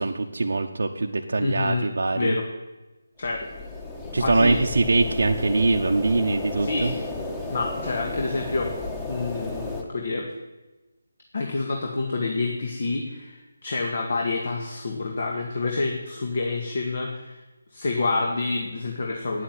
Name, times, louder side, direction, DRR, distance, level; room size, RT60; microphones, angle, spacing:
voice 1, 0.0-2.4 4.1-6.9, right 3 dB, 75° right, 2 dB, 0.9 m, -23 dB
voice 2, 1.4-1.9 2.2-2.5 3.2-3.5 4.2-4.6 6.6-7.0 7.5-8.7 9.1-10.3 11.3-17.4 17.7-19.4, left 3 dB, 55° left, 1 dB, 1.9 m, -28 dB
sound 1, 3.2-9.8, left 2 dB, 10° left, 1.4 m, -33 dB
9.6 x 8.5 x 9.8 m, 1.1 s
figure-of-eight pair, 165°, 0 cm